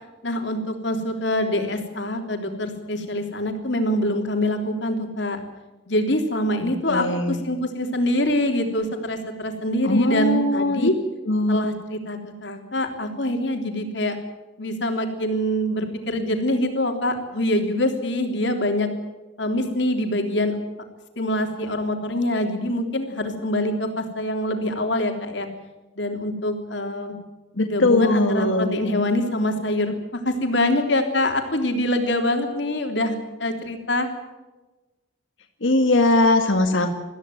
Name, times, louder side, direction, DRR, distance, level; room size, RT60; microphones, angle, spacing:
voice 1, 0.2-5.4 5.9-10.9 11.5-14.2 14.6-18.9 19.4-20.5 21.2-25.5 26.0-27.1 27.7-34.1, left 1 dB, 65° left, 4 dB, 3.4 m, -24 dB
voice 2, 6.6-7.4 9.8-10.9 11.3-11.7 27.6-28.7 35.6-36.9, left 2 dB, 80° left, 4 dB, 2.1 m, -20 dB
22.0 x 15.0 x 9.4 m, 1.1 s
head